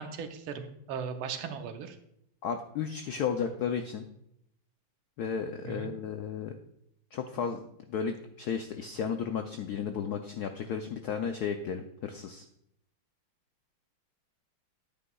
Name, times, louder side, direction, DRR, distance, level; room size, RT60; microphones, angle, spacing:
voice 1, 0.0-2.0 5.6-5.9, right 6 dB, 80° right, 7 dB, 1.6 m, -38 dB
voice 2, 2.4-4.1 5.2-6.5 7.1-12.5, left 7 dB, 85° left, 6 dB, 0.8 m, -34 dB
10.5 x 9.0 x 2.3 m, 0.75 s
omnidirectional pair, 2.3 m